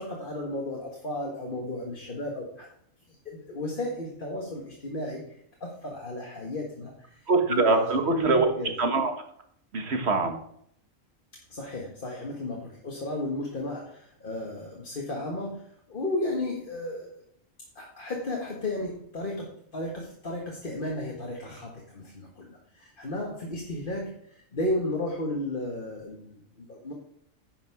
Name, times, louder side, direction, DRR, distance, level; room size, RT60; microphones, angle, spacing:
voice 1, 0.0-2.7 3.3-5.3 5.6-7.9 8.2-8.7 11.5-17.1 17.8-26.9, left 1 dB, 40° left, -1 dB, 1.8 m, -34 dB
voice 2, 7.3-8.5 8.8-9.1 9.7-10.4, right 3 dB, 50° right, 5 dB, 1.7 m, -23 dB
10.5 x 6.1 x 6.0 m, 0.68 s
omnidirectional pair, 1.4 m